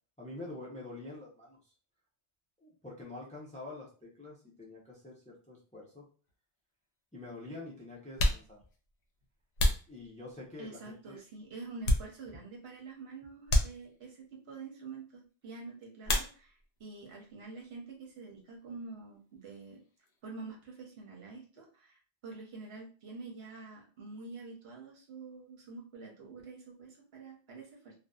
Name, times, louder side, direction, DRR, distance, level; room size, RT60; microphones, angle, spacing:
voice 1, 0.2-1.6 2.6-6.1 7.1-8.6 9.9-10.8 11.1-11.2, left 2 dB, 10° left, -4 dB, 0.4 m, -46 dB
sound 1, 6.3-6.4 7.3-7.4 8.0-10.7 11.2-12.6 12.8-13.0 13.4-14.3 16.0-16.8 17.1-17.8 18.0-20.2, left 1 dB, 85° left, 0.9 m, -33 dB
voice 2, 10.6-19.8 20.2-27.9, right 3 dB, 70° right, 0 dB, 0.9 m, -47 dB
2.6 x 2.2 x 2.3 m, 0.38 s
omnidirectional pair, 1.1 m